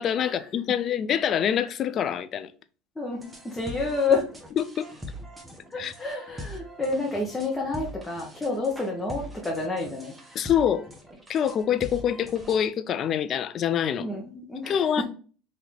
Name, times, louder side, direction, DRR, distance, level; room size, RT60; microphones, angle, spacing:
voice 1, 0.0-2.5 4.6-4.9 5.8-5.9 10.3-10.8 11.3-14.1 14.7-15.0, left 9 dB, 45° left, 0.4 m, -25 dB
voice 2, 3.0-4.3 5.7-10.1 14.0-15.0, left 3 dB, 10° left, 1.1 m, -29 dB
sound 1, 3.1-12.7, equal, 15° right, 1.0 m, -42 dB
3.9 x 2.8 x 3.2 m
supercardioid pair, 100°, 0 cm